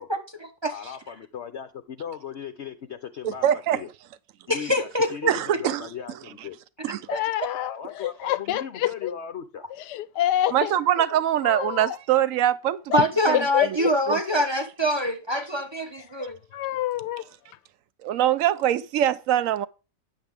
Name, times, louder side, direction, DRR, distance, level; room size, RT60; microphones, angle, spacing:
voice 1, 0.0-1.0 4.5-5.3 6.9-7.2 12.9-16.4, equal, 20° right, 0.7 m, -25 dB
voice 2, 0.7-3.9 4.5-6.6 7.5-9.6, left 8 dB, 55° left, 0.7 m, -37 dB
voice 3, 3.2-3.8 5.3-5.9 6.8-7.0 10.5-12.8 13.3-13.4 14.1-14.4 18.0-19.7, right 11 dB, 75° right, 0.7 m, -23 dB
voice 4, 7.1-9.1 9.8-10.7 11.4-12.0 12.9-13.0 13.3-13.9 16.2-17.2, left 12 dB, 75° left, 1.2 m, -27 dB
10.0 x 7.4 x 3.4 m
omnidirectional pair, 1.9 m